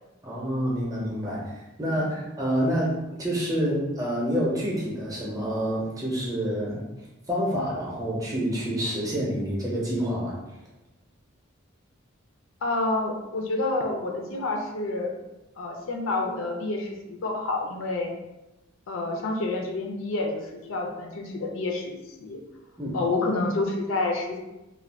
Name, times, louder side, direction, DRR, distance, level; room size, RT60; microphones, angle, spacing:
voice 1, 0.2-6.8 7.3-10.4 22.8-23.0, equal, 15° right, -4 dB, 0.6 m, -28 dB
voice 2, 12.6-15.1 15.6-18.1 18.9-20.4 20.7-22.4 22.9-24.4, left 2 dB, 75° left, 2 dB, 0.4 m, -28 dB
2.3 x 2.2 x 3.3 m, 0.97 s
head